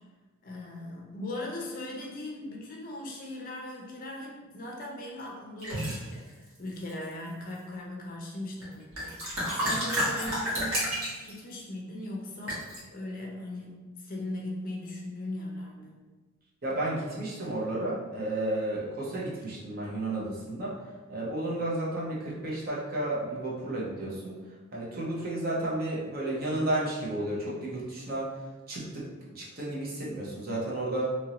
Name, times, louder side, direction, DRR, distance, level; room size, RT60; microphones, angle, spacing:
voice 1, 0.4-16.0, left 1 dB, 40° left, -1 dB, 0.5 m, -39 dB
sound 1, 5.6-6.0 6.7-7.3 8.6-8.7 8.9-11.4 12.5-12.8, equal, 75° right, 1.3 m, -30 dB
voice 2, 16.6-20.7 21.1-24.4 24.7-28.3 28.7-29.1 29.3-31.1, right 1 dB, 45° right, -5 dB, 0.7 m, -32 dB
3.0 x 2.6 x 2.9 m, 1.3 s
head